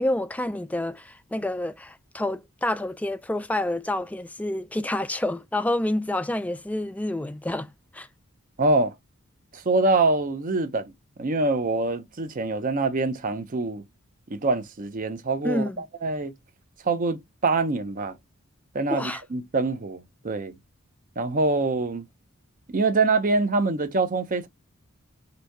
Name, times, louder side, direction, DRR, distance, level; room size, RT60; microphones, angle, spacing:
voice 1, 0.0-7.7 7.9-8.1 15.4-15.8 18.9-19.2, left 1 dB, 5° left, 0.3 m, -28 dB
voice 2, 8.6-9.0 9.5-10.9 11.2-13.8 14.3-16.3 16.8-18.2 18.7-20.6 21.2-22.1 22.7-24.5, right 3 dB, 40° right, 0.6 m, -25 dB
4.0 x 2.6 x 4.5 m
head